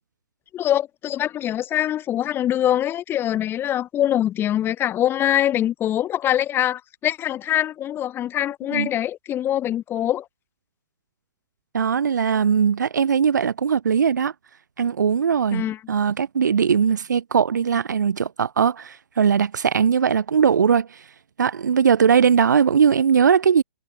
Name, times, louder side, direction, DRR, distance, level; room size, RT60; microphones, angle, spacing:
voice 1, 0.5-10.3 15.5-15.8, left 11 dB, 25° left, 4.4 m, -23 dB
voice 2, 11.7-14.3 14.8-21.0 21.4-23.6, right 7 dB, 80° right, 4.7 m, -20 dB
hypercardioid pair, 130°, 10 cm